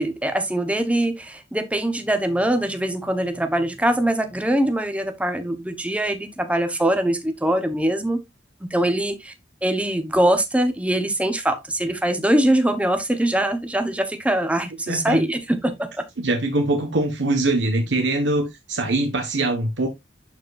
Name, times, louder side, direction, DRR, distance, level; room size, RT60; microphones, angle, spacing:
voice 1, 0.0-8.2 8.6-9.3 9.6-16.1, right 1 dB, 5° right, 1.0 m, -22 dB
voice 2, 14.9-15.2 16.2-19.9, right 2 dB, 80° right, 1.3 m, -23 dB
12.0 x 4.4 x 2.5 m
head